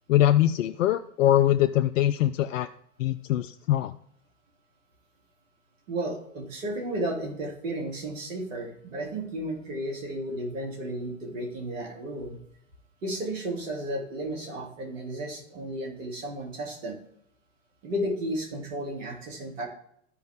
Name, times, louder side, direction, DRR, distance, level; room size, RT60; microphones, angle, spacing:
voice 1, 0.1-2.7 3.0-3.9, left 12 dB, 75° left, 9 dB, 0.5 m, -23 dB
voice 2, 5.9-12.4 13.0-17.0 17.8-19.7, right 1 dB, 70° right, 1 dB, 3.0 m, -33 dB
13.5 x 5.2 x 3.6 m, 0.69 s
hypercardioid pair, 105°, 39 cm